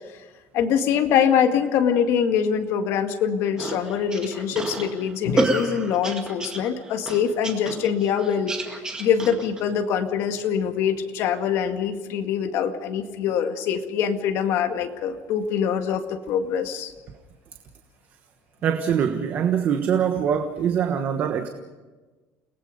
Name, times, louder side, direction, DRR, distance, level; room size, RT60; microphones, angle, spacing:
voice 1, 0.5-8.6 9.0-16.9, left 8 dB, 55° left, 5 dB, 2.0 m, -24 dB
sound 1, 3.6-9.6, right 2 dB, 15° right, 2.2 m, -29 dB
voice 2, 18.6-21.5, right 8 dB, 35° right, 6 dB, 1.3 m, -23 dB
29.5 x 19.0 x 5.3 m, 1.3 s
cardioid pair, 180°, 5 cm